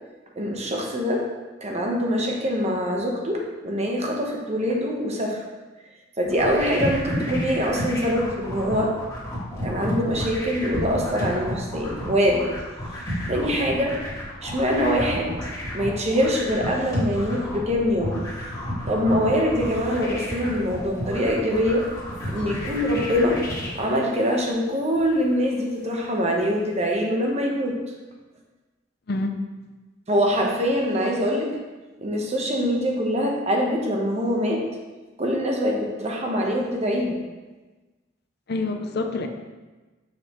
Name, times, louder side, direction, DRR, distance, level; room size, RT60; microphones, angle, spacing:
voice 1, 0.4-1.2 1.6-5.4 6.2-8.9 9.6-12.5 13.3-14.0 14.4-15.4 15.7-18.2 18.9-21.9 22.3-23.4 23.7-27.8 30.1-31.6 32.0-34.6 35.2-37.2, equal, 35° right, 0 dB, 1.0 m, -24 dB
sound 1, 6.2-23.7, equal, 20° left, 1.9 m, -31 dB
sound 2, 20.0-21.1 21.6-26.9, left 3 dB, 80° left, 1.0 m, -44 dB
voice 2, 29.1-29.4 38.5-39.3, left 2 dB, 55° left, 6 dB, 0.6 m, -27 dB
6.7 x 5.6 x 3.0 m, 1.2 s
head